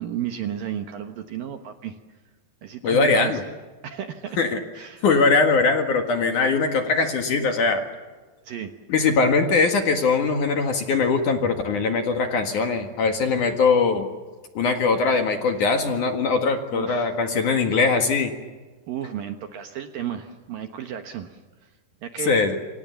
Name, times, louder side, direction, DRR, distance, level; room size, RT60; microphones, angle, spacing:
voice 1, 0.0-2.0 2.6-3.4 3.8-4.4 4.7-5.0 8.4-8.7 16.7-17.1 18.9-21.7 22.0-22.3, right 9 dB, 65° right, 6 dB, 2.4 m, -33 dB
voice 2, 2.8-3.4 4.4-4.6 5.0-7.8 8.9-14.1 14.6-18.3 22.3-22.6, left 4 dB, 55° left, 5 dB, 2.7 m, -21 dB
27.5 x 27.5 x 7.0 m, 1.4 s
omnidirectional pair, 5.2 m